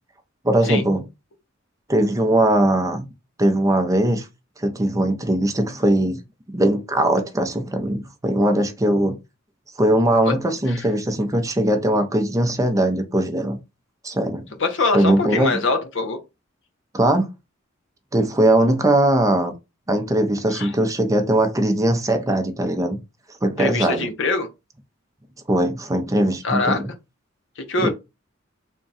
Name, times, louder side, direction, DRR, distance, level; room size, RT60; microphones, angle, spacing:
voice 1, 0.4-1.0 1.9-3.1 3.4-4.3 4.6-6.2 6.5-9.2 9.8-13.6 14.0-14.4 14.9-15.6 16.9-17.3 18.1-19.5 19.9-23.0 23.4-24.1 25.5-26.9 27.8-27.9, right 1 dB, 15° right, 0.5 m, -20 dB
voice 2, 14.6-16.2 20.5-20.7 23.6-24.5 26.4-26.8 27.6-27.9, left 3 dB, 65° left, 0.7 m, -23 dB
3.5 x 2.2 x 4.0 m
head